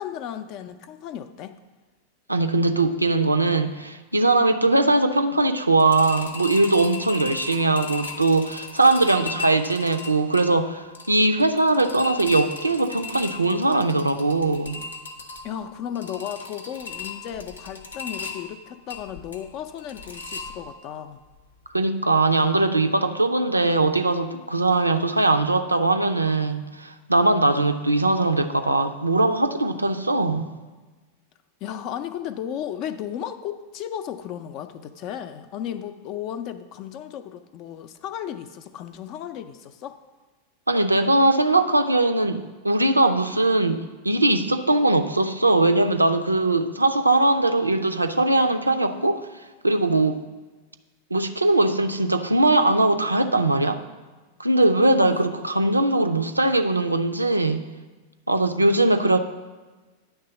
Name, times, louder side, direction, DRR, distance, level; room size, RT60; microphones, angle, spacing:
voice 1, 0.0-1.6 15.4-21.2 31.6-40.0 55.0-55.2 55.7-55.8, left 10 dB, 40° left, 10 dB, 0.5 m, -34 dB
voice 2, 2.3-14.8 21.7-30.5 40.7-49.2 49.6-50.2 51.1-53.8 54.4-57.6 58.3-59.2, right 2 dB, 85° right, 7 dB, 0.5 m, -20 dB
sound 1, 5.8-21.0 21.3-21.4 21.8-21.9, left 4 dB, 75° left, 0.7 m, -37 dB
9.5 x 3.3 x 6.8 m, 1.3 s
figure-of-eight pair, 90°, 0 cm